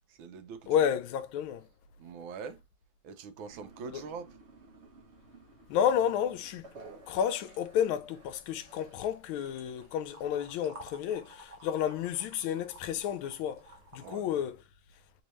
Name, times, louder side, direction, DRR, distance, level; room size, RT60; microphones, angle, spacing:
voice 1, 0.1-0.7 2.0-2.6 3.0-4.3 14.0-14.3, right 5 dB, 80° right, 1.4 m, -43 dB
voice 2, 0.7-1.7 3.9-4.0 5.7-6.7 7.1-13.7 13.9-14.6, left 9 dB, 85° left, 1.4 m, -31 dB
sound 1, 3.5-14.1, right 2 dB, 55° right, 0.8 m, -54 dB
3.6 x 2.8 x 3.0 m
omnidirectional pair, 2.2 m